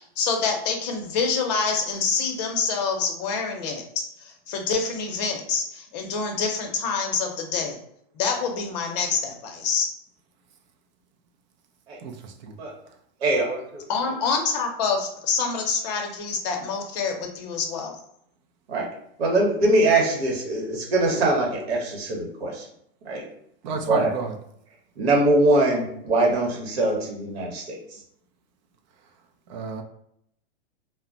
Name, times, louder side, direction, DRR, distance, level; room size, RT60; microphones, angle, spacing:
voice 1, 0.0-7.8 8.1-9.9 13.9-17.9, left 5 dB, 40° left, 2 dB, 0.6 m, -26 dB
voice 2, 12.0-12.6 23.6-24.3 29.5-29.8, right 5 dB, 45° right, 5 dB, 0.5 m, -30 dB
voice 3, 13.2-13.8 18.7-18.9 19.2-22.7 23.0-23.2 23.9-24.1 25.0-28.0, right 2 dB, 75° right, -1 dB, 1.0 m, -22 dB
2.2 x 2.0 x 3.7 m, 0.73 s
supercardioid pair, 160°, 31 cm